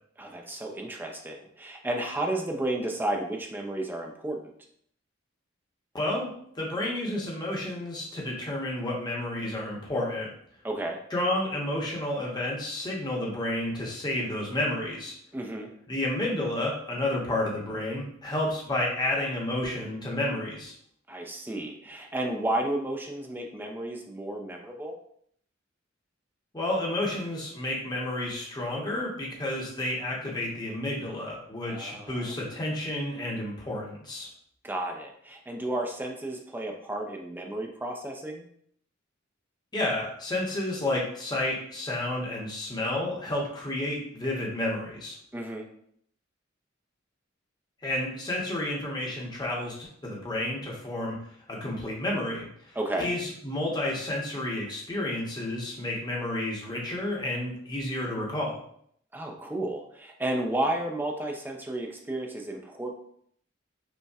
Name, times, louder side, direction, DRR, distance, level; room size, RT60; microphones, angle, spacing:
voice 1, 0.2-4.5 10.6-11.0 15.3-15.7 21.1-25.0 31.7-32.3 34.6-38.4 45.3-45.7 52.8-53.1 59.1-62.9, right 1 dB, 10° right, 1 dB, 0.4 m, -32 dB
voice 2, 5.9-10.3 11.1-15.1 15.9-20.7 26.5-34.3 39.7-45.2 47.8-58.6, left 1 dB, 20° left, -3 dB, 0.8 m, -31 dB
5.2 x 2.1 x 2.4 m, 0.66 s
head